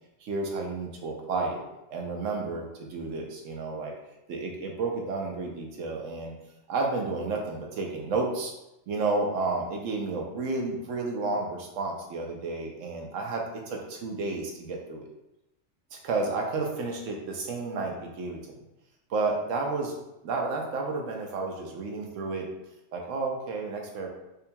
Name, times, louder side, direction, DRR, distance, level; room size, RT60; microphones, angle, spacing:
voice 1, 0.2-1.6 1.9-3.9 4.3-6.3 6.7-8.5 8.9-15.1 15.9-18.6 19.1-19.9 20.2-22.5 22.9-24.1, right 3 dB, 85° right, 1 dB, 1.1 m, -31 dB
5.3 x 2.2 x 2.8 m, 0.89 s
omnidirectional pair, 1.3 m